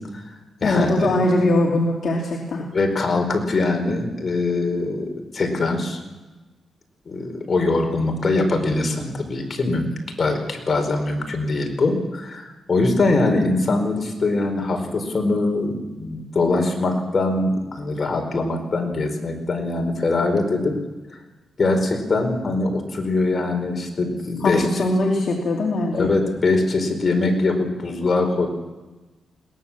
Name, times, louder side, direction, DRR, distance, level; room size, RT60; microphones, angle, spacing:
voice 1, 0.0-1.2 2.7-5.0 5.3-6.0 7.0-9.9 10.2-20.7 21.6-24.8 25.9-28.5, left 2 dB, 40° left, 4 dB, 4.7 m, -22 dB
voice 2, 0.6-2.6 24.4-26.1, left 2 dB, 60° left, 0 dB, 3.0 m, -21 dB
22.0 x 18.5 x 7.4 m, 1.2 s
cardioid pair, 100°, 0 cm